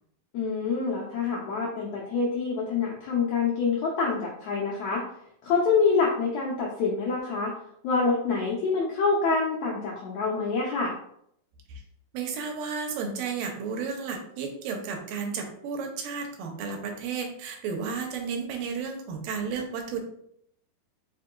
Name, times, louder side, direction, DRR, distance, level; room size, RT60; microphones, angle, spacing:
voice 1, 0.3-5.0 5.4-7.5 7.8-10.9, left 4 dB, 80° left, -4 dB, 1.5 m, -26 dB
voice 2, 12.1-20.0, right 5 dB, 90° right, 3 dB, 2.5 m, -33 dB
5.5 x 3.6 x 2.3 m, 0.71 s
omnidirectional pair, 3.8 m